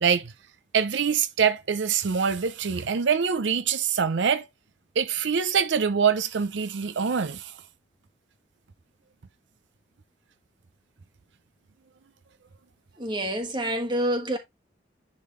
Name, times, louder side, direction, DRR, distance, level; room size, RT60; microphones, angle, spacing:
voice 1, 0.0-0.3 0.7-4.5 5.0-7.6, right 6 dB, 80° right, 0.6 m, -24 dB
voice 2, 13.0-14.4, right 1 dB, 25° right, 1.4 m, -27 dB
10.5 x 3.7 x 3.2 m
head